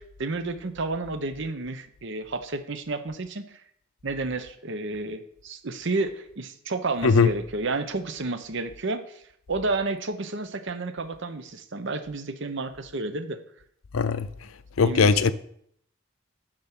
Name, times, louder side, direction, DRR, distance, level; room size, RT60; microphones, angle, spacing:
voice 1, 0.0-3.4 4.0-9.2 9.5-13.4 14.8-15.3, right 3 dB, 60° right, 0.9 m, -31 dB
voice 2, 13.9-14.3 14.8-15.3, left 5 dB, 85° left, 0.6 m, -19 dB
8.9 x 5.3 x 6.1 m
head